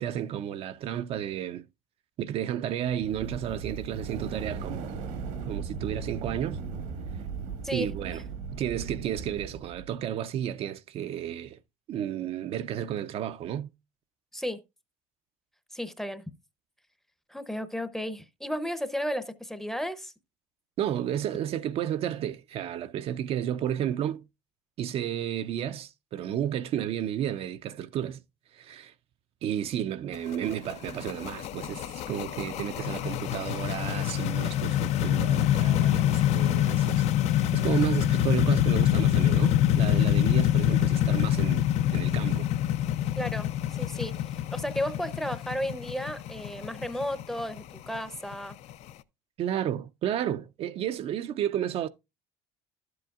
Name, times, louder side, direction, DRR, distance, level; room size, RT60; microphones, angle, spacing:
voice 1, 0.0-1.7 2.2-4.9 5.5-6.6 7.7-8.2 8.5-11.6 11.9-13.7 20.8-24.2 24.8-28.2 28.5-28.9 29.4-41.7 41.9-42.5 49.4-51.9, right 10 dB, 50° right, 0.5 m, -32 dB
sound 1, 2.9-9.8, right 5 dB, 90° right, 1.6 m, -37 dB
voice 2, 15.7-16.2 17.3-20.1 43.2-48.6, equal, 5° left, 0.7 m, -33 dB
sound 2, 30.1-48.9, left 11 dB, 55° left, 0.5 m, -26 dB
11.5 x 7.7 x 2.4 m
cardioid pair, 130°, 13 cm